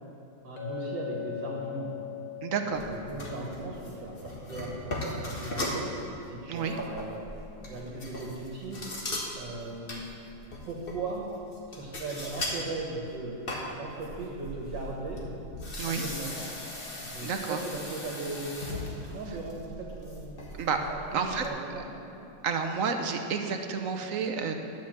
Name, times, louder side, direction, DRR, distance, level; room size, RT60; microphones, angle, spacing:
voice 1, 0.4-2.0 2.6-5.9 6.2-8.8 9.4-10.0 10.7-11.3 11.7-13.4 13.7-15.2 15.8-16.5 17.0-22.0, right 2 dB, 85° right, -2 dB, 2.1 m, -38 dB
Chink clink, 0.6-4.7, left 13 dB, 60° left, 1.8 m, -41 dB
voice 2, 2.4-2.8 6.5-6.8 15.8-16.0 17.2-17.6 20.6-20.8 21.1-21.5 22.4-24.5, right 6 dB, 60° right, 5 dB, 1.0 m, -30 dB
sound 1, 2.7-6.1 6.5-12.6 12.9-21.5, left 1 dB, 35° left, 1.5 m, -39 dB
11.5 x 5.8 x 7.5 m, 2.9 s
omnidirectional pair, 1.9 m